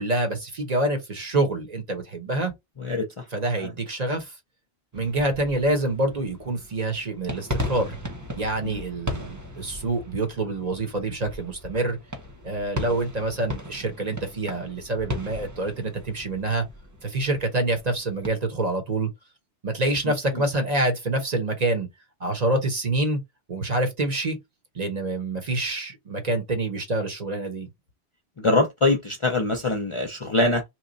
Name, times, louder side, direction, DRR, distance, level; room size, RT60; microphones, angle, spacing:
voice 1, 0.0-2.5 3.3-4.3 4.9-8.0 8.3-12.0 12.4-16.6 17.0-19.1 19.6-21.9 22.2-23.2 23.5-24.4 24.7-27.7, right 2 dB, 40° right, 0.9 m, -26 dB
voice 2, 2.8-3.2 3.6-3.7 8.6-8.8 20.1-20.4 28.4-30.6, left 2 dB, 40° left, 0.5 m, -24 dB
sound 1, 4.9-18.3, left 1 dB, 20° right, 0.6 m, -37 dB
3.0 x 2.2 x 3.8 m
omnidirectional pair, 1.1 m